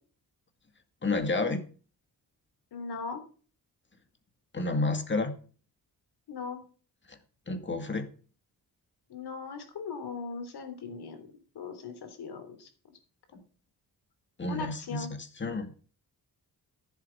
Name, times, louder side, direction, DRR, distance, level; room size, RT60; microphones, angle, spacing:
voice 1, 1.0-1.6 4.5-5.3 7.1-7.2 7.5-8.1 14.4-15.7, left 3 dB, 30° left, 8 dB, 2.1 m, -30 dB
voice 2, 2.7-3.2 6.3-6.6 9.1-11.3 11.5-12.7 14.5-15.1, left 4 dB, 85° left, 8 dB, 3.4 m, -39 dB
14.5 x 7.9 x 5.8 m, 0.40 s
wide cardioid pair, 130°, 38 cm